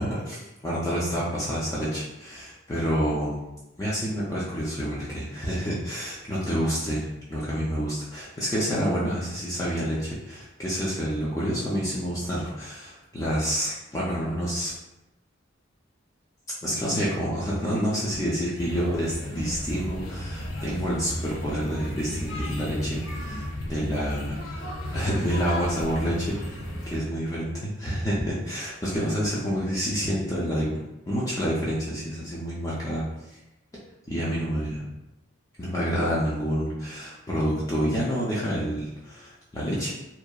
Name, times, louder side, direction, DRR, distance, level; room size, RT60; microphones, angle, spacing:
voice 1, 0.0-3.4 3.8-14.7 16.6-26.6 26.9-30.7 31.1-33.0 34.1-34.8 35.6-39.9, equal, 15° left, -7 dB, 0.4 m, -28 dB
sound 1, 18.6-27.0, left 1 dB, 85° left, 0.6 m, -34 dB
2.8 x 2.3 x 2.2 m, 0.96 s
head